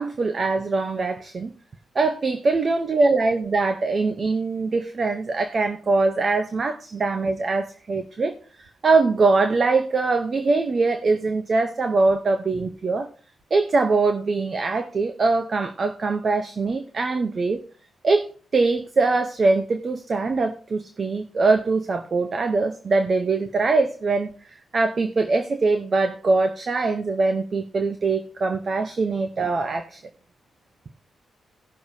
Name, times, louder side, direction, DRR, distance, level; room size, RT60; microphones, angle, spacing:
voice 1, 0.0-1.5 1.9-13.1 13.5-17.6 18.0-18.3 18.5-30.0, right 3 dB, 35° right, 0.8 m, -22 dB
18.0 x 6.5 x 2.7 m
wide cardioid pair, 135°, 0 cm